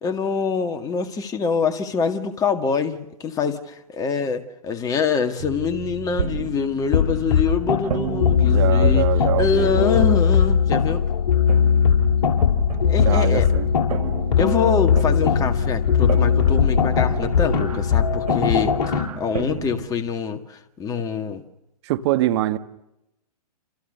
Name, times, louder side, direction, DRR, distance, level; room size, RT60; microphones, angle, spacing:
voice 1, 0.0-9.1 9.4-11.0 12.9-13.5 14.4-21.4, left 5 dB, 15° left, 1.9 m, -25 dB
sound 1, 5.4-11.1 11.5-19.8, right 6 dB, 75° right, 7.1 m, -33 dB
sound 2, 6.9-19.0, left 7 dB, 45° left, 6.8 m, -19 dB
voice 2, 8.5-9.8 13.0-13.7 21.8-22.6, right 15 dB, 40° right, 1.6 m, -23 dB
29.5 x 28.5 x 6.9 m
hypercardioid pair, 125°, 21 cm